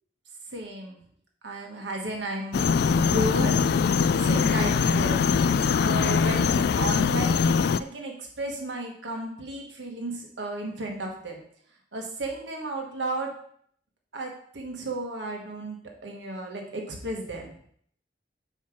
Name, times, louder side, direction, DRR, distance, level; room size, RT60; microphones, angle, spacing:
voice 1, 0.5-1.0 1.4-3.7 4.2-7.5 7.8-11.4 11.9-13.3 14.1-17.5, right 1 dB, 80° right, 1 dB, 1.4 m, -34 dB
sound 1, 2.5-7.8, left 5 dB, 60° left, 0.3 m, -22 dB
5.7 x 4.6 x 6.0 m, 0.63 s
head